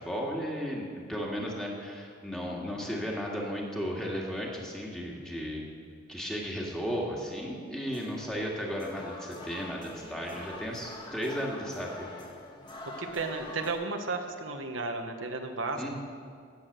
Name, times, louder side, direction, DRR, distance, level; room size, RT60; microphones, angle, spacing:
voice 1, 0.0-5.7 6.1-12.1 15.8-15.9, equal, 5° left, -3 dB, 2.1 m, -35 dB
sound 1, 7.9-13.7, left 2 dB, 25° left, 1.6 m, -45 dB
voice 2, 13.0-15.9, right 3 dB, 80° right, 4 dB, 1.2 m, -34 dB
16.5 x 8.5 x 6.8 m, 2.2 s
head